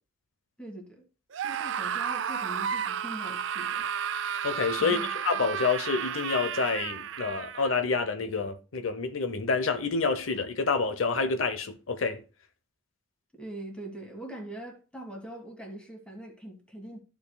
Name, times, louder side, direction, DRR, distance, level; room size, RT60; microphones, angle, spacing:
voice 1, 0.6-1.1 1.4-3.9 4.8-5.1 13.4-17.0, right 1 dB, 5° left, 1.8 m, -42 dB
Screaming, 1.3-7.8, right 8 dB, 65° right, 0.4 m, -32 dB
voice 2, 4.4-5.0 5.2-12.2, left 4 dB, 80° left, 0.8 m, -28 dB
13.5 x 5.1 x 2.2 m
head